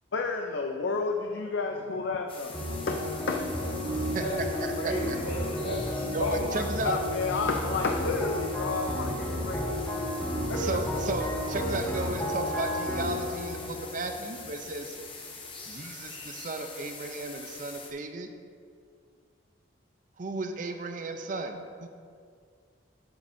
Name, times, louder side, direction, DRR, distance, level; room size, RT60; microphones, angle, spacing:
voice 1, 0.1-2.6 2.9-3.0 3.3-3.4 6.2-9.8 10.5-10.7, left 4 dB, 70° left, 3 dB, 0.5 m, -31 dB
sound 1, 2.3-17.9, left 4 dB, 25° left, 0.8 m, -44 dB
sound 2, 2.5-15.0, left 1 dB, 10° left, 1.4 m, -33 dB
sound 3, 2.9-12.1, equal, 15° right, 1.2 m, -38 dB
voice 2, 3.8-4.5 4.7-6.0 6.3-6.4, right 1 dB, 85° left, -3 dB, 1.9 m, -35 dB
voice 3, 4.6-5.2 6.1-7.0 10.5-15.0 15.7-18.3 20.2-21.9, right 3 dB, 40° right, 6 dB, 0.5 m, -35 dB
10.5 x 8.2 x 2.7 m, 2.2 s
head